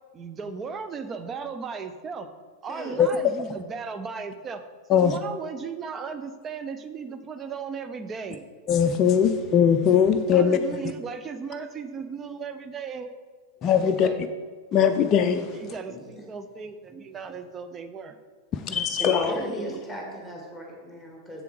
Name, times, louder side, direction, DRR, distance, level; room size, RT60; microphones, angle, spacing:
voice 1, 0.1-2.3 2.6-4.6 4.9-8.4 10.3-13.1 13.8-14.3 15.5-18.2 19.3-19.8, right 5 dB, 25° right, 9 dB, 0.6 m, -36 dB
voice 2, 8.7-10.6 13.6-14.1 14.7-15.6 18.5-19.4, left 8 dB, 30° left, 6 dB, 0.5 m, -20 dB
voice 3, 15.9-16.2 19.0-21.4, equal, ahead, -1 dB, 2.1 m, -36 dB
6.9 x 6.9 x 4.7 m, 1.5 s
figure-of-eight pair, 90°, 0 cm